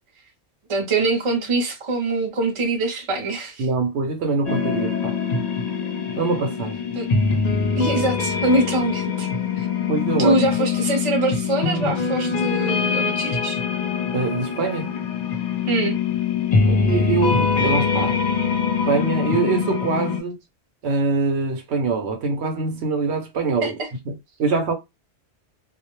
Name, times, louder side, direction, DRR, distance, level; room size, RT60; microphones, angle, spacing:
voice 1, 0.7-3.7 6.9-7.1 7.8-9.3 9.5-9.7 10.2-13.6 15.7-16.0 23.6-23.9, right 2 dB, 40° right, 0.5 m, -23 dB
voice 2, 3.6-5.1 6.2-6.8 9.9-10.4 14.1-14.9 16.7-18.2 18.9-20.4 20.8-23.8 24.1-24.7, right 4 dB, 70° right, 0.8 m, -24 dB
sound 1, 4.5-20.2, left 5 dB, 65° left, 0.4 m, -23 dB
2.3 x 2.0 x 2.9 m
omnidirectional pair, 1.2 m